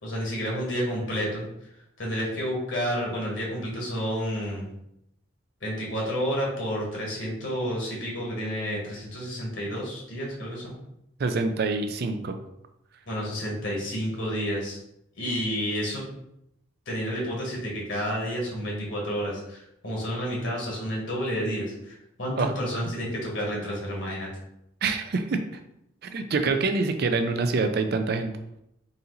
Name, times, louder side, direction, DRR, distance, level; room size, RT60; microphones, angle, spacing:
voice 1, 0.0-1.4 2.0-4.7 5.6-10.7 13.1-14.8 15.2-16.0 16.9-24.3, equal, 60° left, -3 dB, 1.5 m, -30 dB
voice 2, 11.2-12.4 22.4-22.8 24.8-25.4 26.0-28.3, right 4 dB, 50° right, 7 dB, 0.4 m, -26 dB
4.0 x 2.8 x 3.9 m, 0.80 s
head